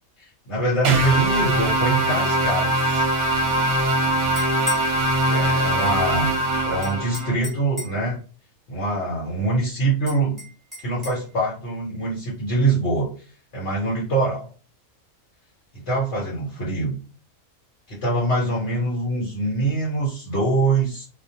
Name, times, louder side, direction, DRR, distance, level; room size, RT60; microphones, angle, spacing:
voice 1, 0.2-3.1 5.2-6.3 6.7-8.2 8.7-10.4 10.8-13.1 13.5-14.5 15.7-17.0 17.9-21.1, right 2 dB, 60° left, -5 dB, 1.1 m, -24 dB
sound 1, 0.8-7.3, right 1 dB, 65° right, 0.9 m, -22 dB
sound 2, 4.3-4.9 6.8-8.1 10.1-11.2, equal, ahead, 0.8 m, -35 dB
2.4 x 2.0 x 2.7 m, 0.39 s
omnidirectional pair, 1.4 m